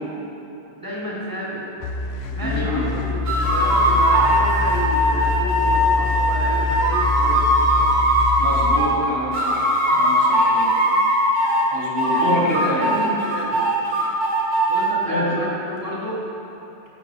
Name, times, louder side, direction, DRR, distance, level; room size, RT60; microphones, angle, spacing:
voice 1, 0.8-1.7 2.3-7.5 12.0-13.6 14.7-16.2, equal, 15° right, -5 dB, 1.7 m, -30 dB
sound 1, 1.8-8.8, left 5 dB, 65° left, 1.0 m, -25 dB
voice 2, 2.4-2.9 8.4-10.7 11.7-12.9 15.1-15.3, left 1 dB, 20° left, -8 dB, 2.5 m, -27 dB
sound 2, 3.2-8.9 9.3-11.7 12.0-14.9, right 1 dB, 40° right, 2.0 m, -19 dB
14.0 x 8.5 x 3.6 m, 2.9 s
omnidirectional pair, 1.2 m